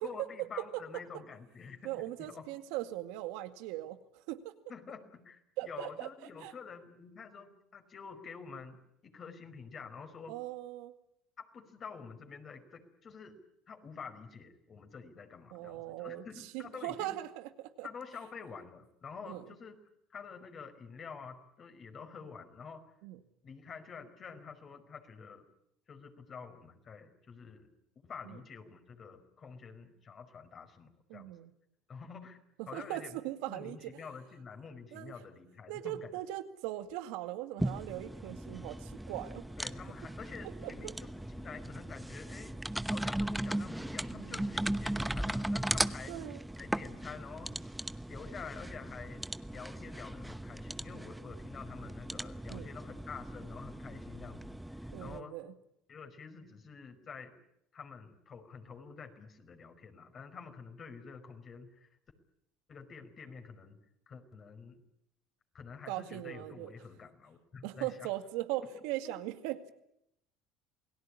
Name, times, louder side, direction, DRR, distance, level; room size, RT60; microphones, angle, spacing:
voice 1, 0.0-1.9 2.2-2.5 4.7-10.4 11.4-13.4 13.7-17.2 17.8-19.7 20.1-22.8 23.4-25.5 25.9-27.8 28.0-31.3 31.9-33.2 33.5-36.1 39.6-42.6 42.9-46.1 46.6-47.6 48.1-49.2 49.5-55.4 55.9-57.4 57.7-61.9 62.7-63.8 64.1-64.8 65.5-68.1 68.6-69.1, left 5 dB, 40° left, 6 dB, 5.1 m, -48 dB
voice 2, 1.8-4.5 5.6-6.1 6.4-6.5 10.3-10.9 15.5-17.9 19.3-19.4 23.0-23.2 28.2-28.4 31.1-31.5 32.6-34.0 34.9-35.1 35.7-39.4 40.6-40.7 44.1-44.7 46.1-46.4 52.5-52.7 54.9-55.6 65.9-66.7 67.6-69.7, right 15 dB, 75° right, 9 dB, 2.1 m, -40 dB
sound 1, 37.6-55.2, right 1 dB, 5° right, 1.0 m, -38 dB
28.5 x 18.5 x 9.9 m, 0.81 s
supercardioid pair, 85°, 0 cm